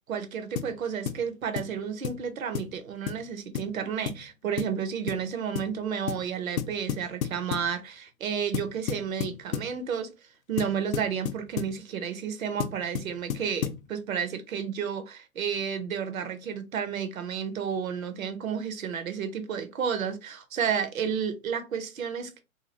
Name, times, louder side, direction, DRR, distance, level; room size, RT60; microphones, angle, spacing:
voice 1, 0.1-10.1 10.5-22.4, right 7 dB, 70° right, 0.8 m, -31 dB
sound 1, 0.6-0.8 1.1-1.2 1.6-1.8 2.0-2.2 2.5-2.8 3.1-3.2 3.5-3.7 4.1-4.3 4.6-4.8 5.1-5.2 5.5-5.7 6.1-6.3 6.6-7.7 8.5-9.7 10.6-11.8 12.6-13.8, left 8 dB, 75° left, 0.6 m, -32 dB
2.9 x 2.4 x 2.8 m
figure-of-eight pair, 120°, 42 cm